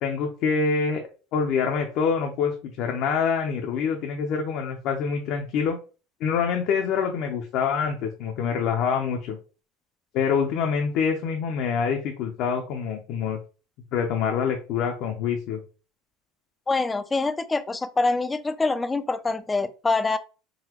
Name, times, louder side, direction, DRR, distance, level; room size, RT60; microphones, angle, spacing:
voice 1, 0.0-5.8 6.2-9.4 10.1-13.4 13.9-15.6, left 6 dB, 60° left, 0.7 m, -26 dB
voice 2, 16.7-20.2, left 3 dB, 15° left, 0.4 m, -25 dB
3.9 x 2.2 x 2.9 m
supercardioid pair, 120°, 0 cm